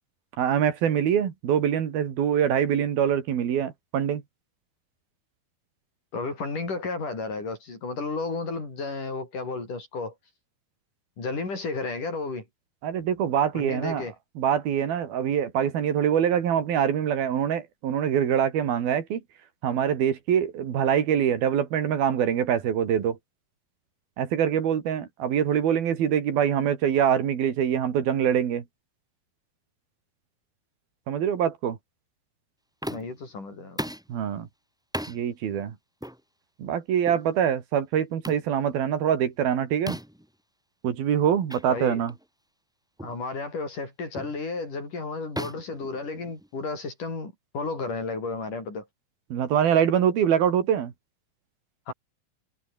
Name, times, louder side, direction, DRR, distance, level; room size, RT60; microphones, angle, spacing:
voice 1, 0.4-4.2 12.8-14.0 14.4-19.2 19.6-23.2 24.2-28.6 31.1-31.8 34.1-34.5 35.1-35.7 36.6-40.0 40.8-42.1 49.3-50.9, right 9 dB, 85° right, 4.5 m, -24 dB
voice 2, 6.1-10.1 11.2-12.5 13.5-14.1 32.9-33.8 41.7-42.0 43.0-48.9 51.9-52.0, left 3 dB, 60° left, 9.1 m, -33 dB
sound 1, 32.8-33.2 33.8-34.1 34.9-35.2 36.0-36.2 37.0-37.2 38.2-38.5 39.9-40.2 41.5-41.6 42.1-42.2 43.0-43.2 44.1-44.4 45.3-46.6, equal, ahead, 1.1 m, -36 dB
omnidirectional pair, 4.2 m